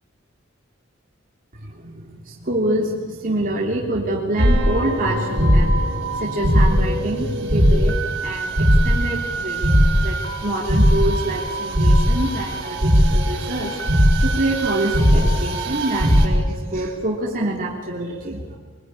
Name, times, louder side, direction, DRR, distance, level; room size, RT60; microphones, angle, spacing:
voice 1, 1.6-13.8 14.2-18.6, right 1 dB, 45° right, -2 dB, 3.4 m, -26 dB
sound 1, 4.4-16.3, equal, 65° right, 6.8 m, -19 dB
27.0 x 21.5 x 9.9 m, 1.5 s
head